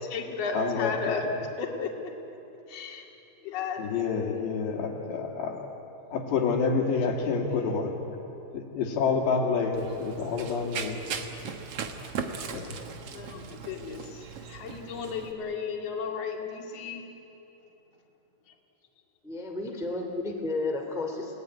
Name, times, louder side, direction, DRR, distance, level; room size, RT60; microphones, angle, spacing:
voice 1, 0.0-1.3 1.6-2.1 2.7-3.0 3.4-3.9 7.5-7.7 11.0-11.2 13.1-14.2 14.5-17.0, left 5 dB, 45° left, 1 dB, 2.9 m, -34 dB
voice 2, 0.5-1.2 3.8-5.7 6.1-8.0 8.5-11.0 12.5-12.8, left 5 dB, 85° left, 1 dB, 4.8 m, -28 dB
Run, 9.7-15.3, right 6 dB, 80° right, 1.3 m, -38 dB
voice 3, 19.2-21.4, left 2 dB, ahead, 1 dB, 1.8 m, -32 dB
29.5 x 18.5 x 9.8 m, 3.0 s
omnidirectional pair, 4.9 m